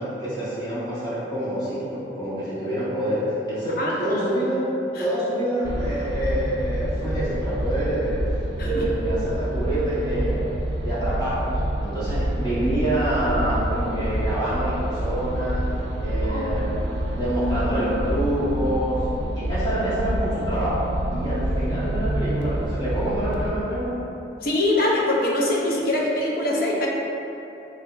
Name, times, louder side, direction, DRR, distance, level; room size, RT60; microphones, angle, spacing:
voice 1, 0.0-4.6 5.0-8.2 8.6-10.5 10.8-15.6 16.0-16.7 17.1-19.1 19.3-20.8 21.1-23.9, right 1 dB, 25° left, -12 dB, 1.2 m, -26 dB
voice 2, 3.8-4.2 5.0-5.1 8.6-8.8 16.3-16.5 21.7-21.8 24.4-26.9, left 1 dB, 55° left, -3 dB, 0.5 m, -23 dB
sound 1, 5.6-23.5, right 1 dB, 90° right, 0.4 m, -27 dB
3.6 x 3.4 x 2.5 m, 2.9 s
head